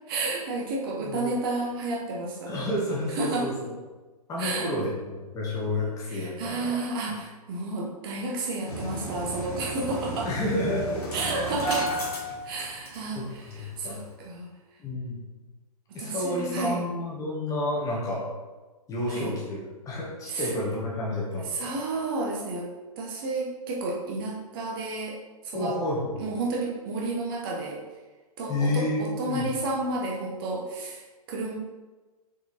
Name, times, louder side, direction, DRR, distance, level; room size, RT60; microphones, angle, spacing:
voice 1, 0.1-2.6 3.2-3.5 4.4-4.7 6.1-10.3 11.1-11.9 12.4-14.5 16.0-16.8 19.1-19.4 20.3-20.5 21.5-22.7 23.0-25.2 25.4-25.8 26.2-27.8 28.4-31.0 31.3-31.5, right 2 dB, 35° right, -2 dB, 1.3 m, -31 dB
voice 2, 1.0-1.3 2.4-3.7 4.3-6.8 10.2-11.5 13.1-14.0 14.8-15.2 15.9-18.3 18.9-19.6 19.8-21.7 25.5-26.2 28.5-29.5, left 1 dB, 15° left, -4 dB, 1.7 m, -30 dB
Engine starting, 8.7-13.2 13.5-13.6 13.9-14.1, right 1 dB, 75° left, 2.2 m, -33 dB
6.3 x 4.8 x 4.2 m, 1.2 s
figure-of-eight pair, 115°, 19 cm